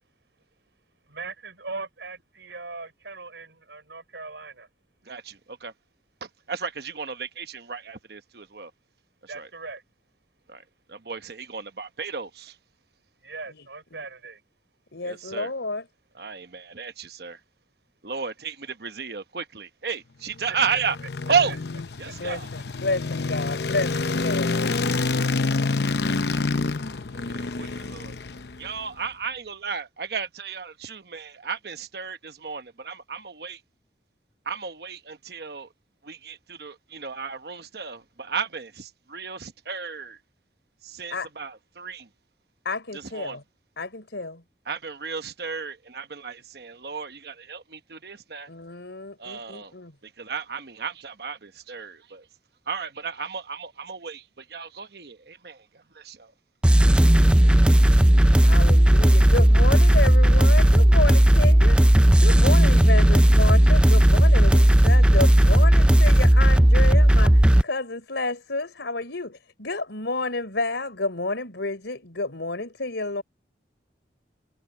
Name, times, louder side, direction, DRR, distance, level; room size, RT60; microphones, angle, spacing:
voice 1, 1.1-4.7 9.3-9.8 13.2-14.4 20.7-20.8 22.0-22.4, right 3 dB, 85° right, 5.5 m, -39 dB
voice 2, 5.1-5.7 6.5-8.7 9.2-9.5 10.5-10.6 10.9-12.5 15.0-15.5 16.2-17.4 18.0-21.0 21.3-21.5 22.0-22.5 27.3-28.2 28.6-33.6 34.5-35.7 36.0-40.2 40.8-42.1 43.2-43.4 44.7-48.5 49.2-49.7 50.0-52.2 52.7-56.3, right 6 dB, 60° right, 1.0 m, -33 dB
voice 3, 14.9-15.9 22.1-25.0 41.1-41.3 42.6-43.4 43.8-44.4 48.5-50.0 58.4-73.2, left 2 dB, 85° left, 3.9 m, -30 dB
sound 1, 20.4-28.8, left 3 dB, 70° left, 0.8 m, -27 dB
sound 2, 56.6-67.6, right 1 dB, 5° right, 0.3 m, -15 dB
head